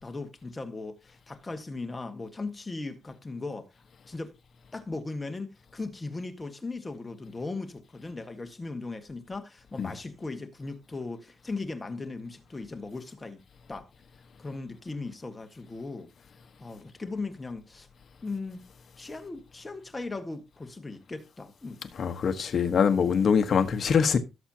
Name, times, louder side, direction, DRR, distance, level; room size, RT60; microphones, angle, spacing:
voice 1, 0.0-3.7 4.1-4.4 4.7-13.4 13.7-13.9 14.4-16.1 16.6-17.9 18.2-18.7 19.0-21.8, left 3 dB, 15° left, 1.6 m, -38 dB
voice 2, 22.0-24.2, left 6 dB, 50° left, 1.3 m, -23 dB
17.0 x 7.2 x 2.9 m
cardioid pair, 135°, 0 cm